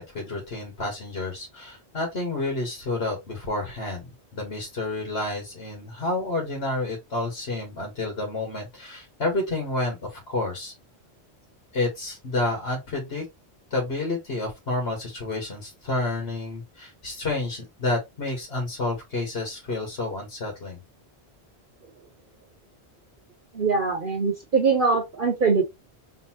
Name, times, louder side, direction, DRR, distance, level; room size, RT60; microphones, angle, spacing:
voice 1, 0.0-10.7 11.7-13.2 13.7-20.8, left 2 dB, 70° left, 1.8 m, -30 dB
voice 2, 23.5-25.6, right 4 dB, 55° right, 1.1 m, -22 dB
3.9 x 3.4 x 2.9 m
omnidirectional pair, 1.1 m